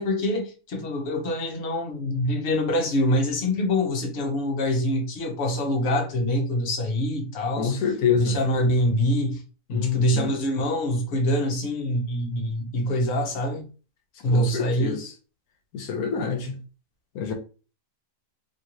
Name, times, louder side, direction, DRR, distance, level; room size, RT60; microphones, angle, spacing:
voice 1, 0.0-9.4 9.7-13.6 14.2-15.0, left 1 dB, 50° left, 1.0 m, -25 dB
voice 2, 7.6-8.4 9.7-10.4 14.3-15.1 15.7-16.5 17.1-17.3, left 6 dB, 85° left, 1.2 m, -26 dB
2.9 x 2.6 x 2.9 m
omnidirectional pair, 1.5 m